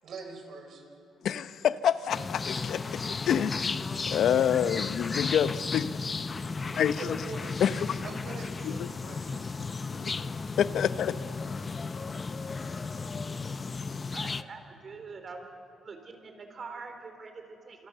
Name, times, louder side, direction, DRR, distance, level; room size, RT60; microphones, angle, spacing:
voice 1, 0.0-0.8 6.4-7.8 8.0-9.7 10.0-10.3, right 4 dB, 65° right, 3 dB, 5.5 m, -44 dB
voice 2, 1.2-3.8 4.1-6.0 6.8-7.2 7.6-8.0 8.6-8.9 9.9-10.1 10.6-11.2, left 9 dB, 70° left, 13 dB, 0.8 m, -27 dB
sound 1, 2.1-14.4, left 4 dB, 30° left, 0.8 m, -34 dB
voice 3, 13.7-15.5 15.8-17.9, right 4 dB, 45° right, 5 dB, 4.0 m, -44 dB
27.0 x 25.5 x 6.8 m, 2.5 s
cardioid pair, 90°, 0 cm